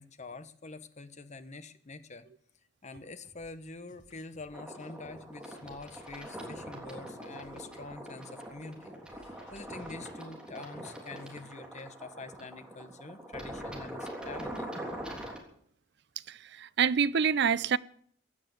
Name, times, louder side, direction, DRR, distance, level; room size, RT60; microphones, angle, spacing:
voice 1, 0.0-2.2 2.8-14.7, left 3 dB, 40° left, 1.1 m, -46 dB
sound 1, 3.2-10.1, left 1 dB, 90° left, 5.9 m, -61 dB
sound 2, 4.5-15.4, right 1 dB, 5° right, 3.4 m, -43 dB
voice 2, 16.3-17.8, right 7 dB, 65° right, 0.5 m, -27 dB
16.0 x 10.5 x 7.8 m
head